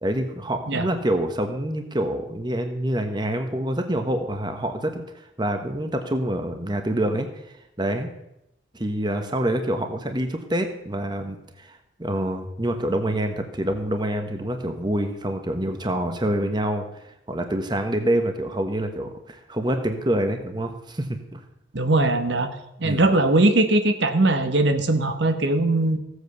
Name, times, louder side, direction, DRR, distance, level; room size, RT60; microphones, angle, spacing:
voice 1, 0.0-7.3 7.8-8.1 8.7-21.4 22.8-23.1, right 1 dB, 25° right, 6 dB, 1.2 m, -26 dB
voice 2, 21.7-22.5 22.8-26.0, right 2 dB, 70° right, 8 dB, 1.2 m, -20 dB
16.5 x 8.2 x 6.8 m, 0.85 s
head